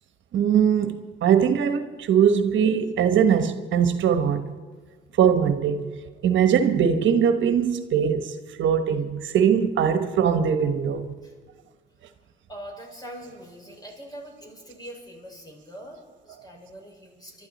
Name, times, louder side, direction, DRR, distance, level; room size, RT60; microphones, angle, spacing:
voice 1, 0.3-4.5 5.1-11.1, right 8 dB, 70° right, 1.2 m, -21 dB
voice 2, 12.5-17.5, equal, 20° left, 5.4 m, -43 dB
24.0 x 12.5 x 4.2 m
cardioid pair, 90°, 20 cm